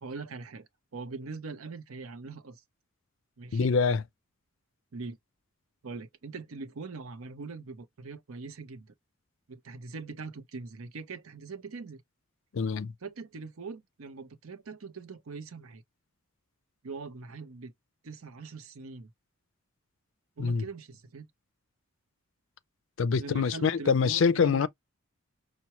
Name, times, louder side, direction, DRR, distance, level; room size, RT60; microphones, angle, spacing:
voice 1, 0.0-2.6 3.4-3.7 4.9-5.2 5.8-8.9 9.5-12.0 13.0-15.8 16.8-17.7 18.0-19.1 20.4-21.3 23.2-24.7, right 4 dB, 75° right, 0.7 m, -42 dB
voice 2, 3.5-4.0 12.5-12.9 20.4-20.6 23.0-24.7, left 5 dB, 60° left, 0.4 m, -25 dB
5.7 x 2.2 x 2.9 m
head